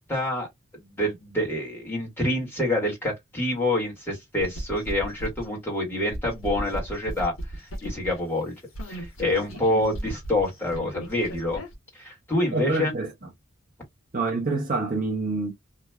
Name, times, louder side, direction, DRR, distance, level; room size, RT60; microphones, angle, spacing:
voice 1, 0.1-0.5 0.7-8.5 8.9-11.6 11.9-12.9, left 1 dB, 10° left, 1.6 m, -27 dB
sound 1, 4.4-8.2 8.7-11.7, right 1 dB, 70° left, 1.1 m, -36 dB
voice 2, 12.5-13.3 14.1-15.5, right 3 dB, 40° right, 0.8 m, -27 dB
3.0 x 2.6 x 2.3 m
head